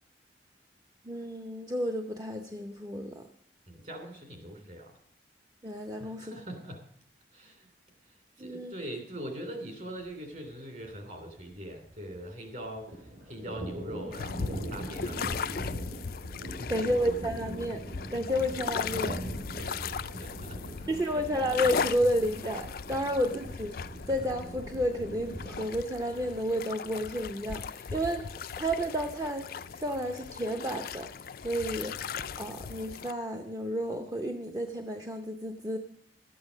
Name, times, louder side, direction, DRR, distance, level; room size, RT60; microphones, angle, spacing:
voice 1, 1.0-3.3 5.6-6.3 8.4-8.7 16.7-17.8 18.1-19.2 20.9-23.7 24.1-28.2 28.6-31.1 31.4-32.0 32.4-35.8, equal, 20° right, 4 dB, 0.7 m, -31 dB
voice 2, 3.7-5.0 6.0-6.8 7.3-7.7 8.0-16.1 16.6-17.1 19.6-19.9 20.2-20.6 21.0-21.3, right 1 dB, 45° right, 4 dB, 3.0 m, -42 dB
Thunder, 10.0-10.2 10.5-10.6 10.9-12.4 12.6-25.6, right 1 dB, 70° right, 5.1 m, -41 dB
sound 1, 14.1-33.1, left 6 dB, 55° left, 0.4 m, -38 dB
13.0 x 8.7 x 6.2 m, 0.67 s
head